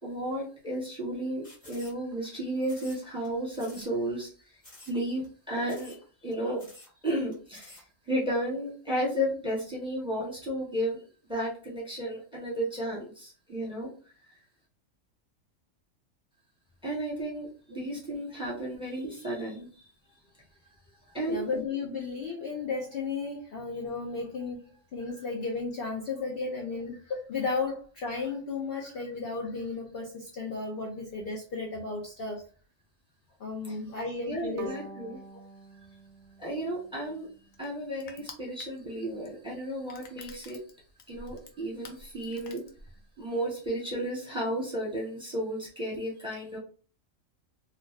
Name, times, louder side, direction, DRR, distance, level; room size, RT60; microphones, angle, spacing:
voice 1, 0.0-4.3 4.9-6.0 6.2-6.6 7.0-13.9 14.2-14.3 16.8-19.9 21.1-21.5 33.7-33.8 34.3-35.2 36.4-37.3 37.6-40.6 41.1-42.6 43.2-46.6, right 1 dB, 5° right, -5 dB, 1.1 m, -33 dB
sound 1, 1.4-2.3 2.6-3.3 3.5-3.9 4.2-4.3 4.6-5.0 5.2-5.3 5.6-6.0 6.3-6.4 6.6-6.9 7.3-7.8, left 2 dB, 30° left, 1.0 m, -51 dB
voice 2, 21.3-32.4 33.4-34.7, left 4 dB, 60° left, -1 dB, 0.7 m, -34 dB
Bowed string instrument, 34.6-37.6, right 1 dB, 70° right, 0.8 m, -46 dB
Crushing, 36.5-43.3, left 3 dB, 90° left, 1.0 m, -51 dB
2.5 x 2.4 x 3.1 m, 0.40 s
omnidirectional pair, 1.3 m